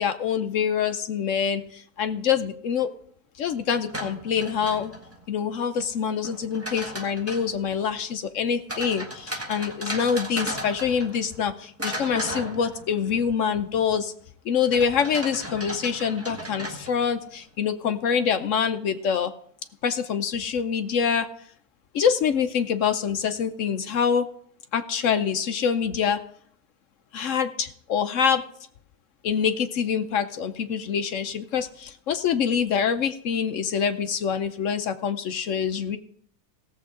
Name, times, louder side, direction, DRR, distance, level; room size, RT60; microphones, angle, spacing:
voice 1, 0.0-2.9 3.4-4.9 5.3-14.1 14.4-19.3 19.8-21.3 21.9-24.3 24.7-26.2 27.1-28.4 29.2-36.0, left 7 dB, 65° left, 9 dB, 0.9 m, -25 dB
Rattling at an iron gate, 3.7-5.2 6.2-7.6 8.7-11.5 11.8-13.2 14.7-17.2, equal, 10° right, 1.4 m, -36 dB
17.5 x 7.4 x 3.7 m, 0.63 s
omnidirectional pair, 1.7 m